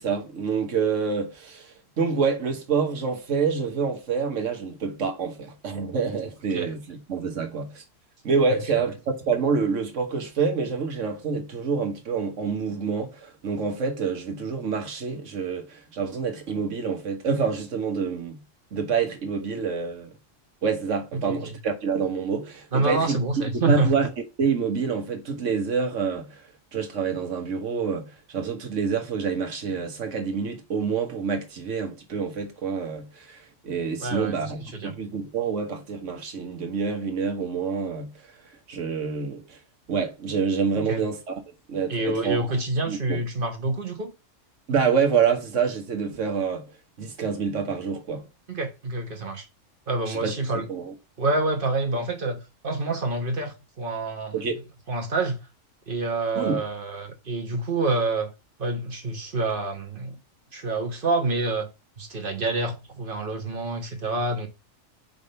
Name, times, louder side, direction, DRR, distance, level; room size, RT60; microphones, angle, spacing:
voice 1, 0.0-7.8 8.2-18.4 18.7-20.1 20.6-23.2 23.5-24.1 24.4-26.3 26.7-38.1 38.7-39.6 39.9-41.4 41.7-42.5 42.9-43.2 44.7-46.6 47.0-48.2 50.1-50.3 50.7-50.9 54.3-54.6 56.3-56.6, right 5 dB, 70° right, 1.6 m, -27 dB
voice 2, 22.7-24.0 34.0-34.9 40.7-41.0 41.9-44.1 48.5-49.4 49.9-50.7 51.2-54.4 54.9-55.4 55.9-58.3 58.6-60.2 60.5-61.7 62.0-64.5, right 2 dB, 45° right, 1.3 m, -27 dB
5.2 x 3.5 x 5.5 m
omnidirectional pair, 1.3 m